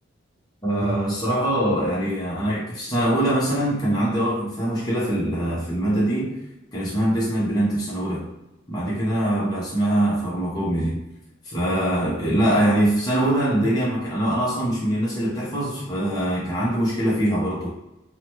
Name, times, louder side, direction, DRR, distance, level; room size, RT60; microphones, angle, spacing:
voice 1, 0.6-6.4 6.7-8.3 8.7-11.0 11.4-17.7, right 1 dB, 20° left, -8 dB, 0.6 m, -23 dB
2.8 x 2.1 x 2.9 m, 0.93 s
head